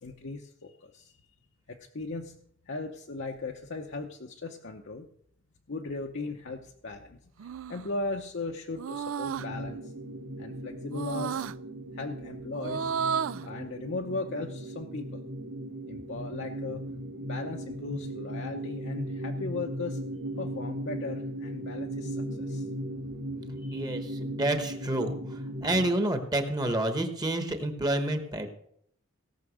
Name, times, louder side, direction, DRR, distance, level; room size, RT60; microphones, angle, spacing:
voice 1, 0.0-1.1 1.7-2.3 2.7-5.1 5.7-9.9 10.4-11.5 11.9-12.9 13.4-15.2 15.9-16.8 17.2-20.0 20.4-22.7 23.6-23.9, left 3 dB, 65° left, 2 dB, 0.8 m, -37 dB
sound 1, 7.4-7.9 8.8-9.5 10.9-11.5 12.5-13.5, right 7 dB, 85° right, 0.4 m, -32 dB
sound 2, 9.4-26.0, right 1 dB, 60° right, 2.3 m, -37 dB
voice 2, 23.7-28.5, right 1 dB, 20° right, 7 dB, 1.1 m, -29 dB
17.0 x 5.8 x 6.3 m, 0.68 s
head